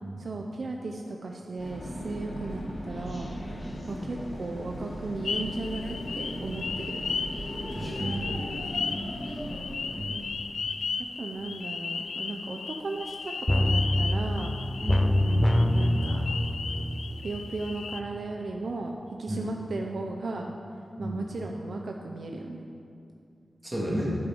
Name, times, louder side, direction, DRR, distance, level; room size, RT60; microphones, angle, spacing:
voice 1, 0.2-3.3 3.9-7.0 9.0-9.1 11.2-14.6 15.2-16.3 17.2-20.5 21.0-22.6, right 3 dB, 65° right, 2 dB, 0.5 m, -36 dB
sound 1, 1.6-10.5, equal, 50° left, 1.7 m, -37 dB
sound 2, 5.2-18.0, left 5 dB, 85° left, 0.4 m, -35 dB
voice 2, 7.7-8.2 10.0-10.3 14.8-15.1 19.3-19.5 21.0-21.2 23.6-24.1, right 1 dB, 20° right, -5 dB, 2.3 m, -32 dB
sound 3, 13.5-18.2 18.5-18.6, left 1 dB, 10° left, 0.4 m, -25 dB
10.5 x 4.9 x 5.3 m, 2.5 s
wide cardioid pair, 75°, 0 cm